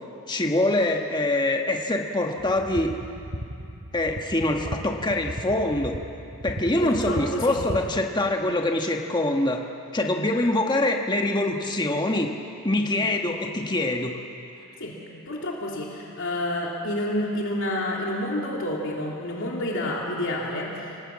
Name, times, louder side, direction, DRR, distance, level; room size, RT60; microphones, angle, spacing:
voice 1, 0.3-2.9 3.9-6.0 6.4-9.6 9.9-12.3 12.6-14.2, left 1 dB, 20° left, 2 dB, 1.4 m, -24 dB
sound 1, 2.4-8.0, equal, 70° right, 2.7 m, -36 dB
voice 2, 6.8-7.6 13.0-13.1 14.8-15.0 15.3-21.0, left 1 dB, 60° left, -2 dB, 3.3 m, -29 dB
26.5 x 19.0 x 8.5 m, 2.7 s
head